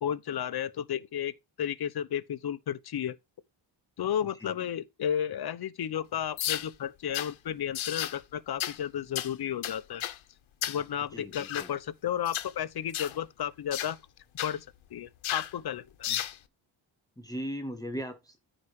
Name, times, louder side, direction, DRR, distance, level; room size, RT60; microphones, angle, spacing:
voice 1, 0.0-3.2 4.0-10.0 10.7-14.0 14.4-14.7 14.9-15.9, left 9 dB, 55° left, 0.9 m, -33 dB
sound 1, 6.4-6.7 7.1-7.3 7.7-8.2 8.6-8.8 9.1-9.3 9.6-10.2 10.6-10.8 11.3-11.7 12.2-12.5 12.9-13.2 13.7-13.9 14.4-14.5 15.2-15.5 16.0-16.4, left 12 dB, 85° left, 1.1 m, -33 dB
voice 2, 11.1-11.7 16.1-16.2 17.2-18.4, equal, 10° left, 0.8 m, -38 dB
14.0 x 4.9 x 3.2 m
wide cardioid pair, 155°, 46 cm